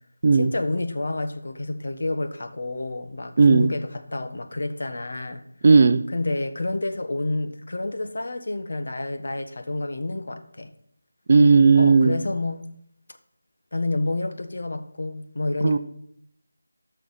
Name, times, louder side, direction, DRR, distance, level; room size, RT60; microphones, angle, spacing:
voice 1, 0.3-5.4 6.1-10.7 11.7-12.7 13.7-15.8, left 2 dB, 55° left, 1.4 m, -29 dB
voice 2, 3.4-3.7 5.6-6.0 11.3-12.1 15.6-15.8, right 4 dB, 35° right, 0.6 m, -15 dB
13.5 x 6.4 x 5.8 m
figure-of-eight pair, 170°, 0 cm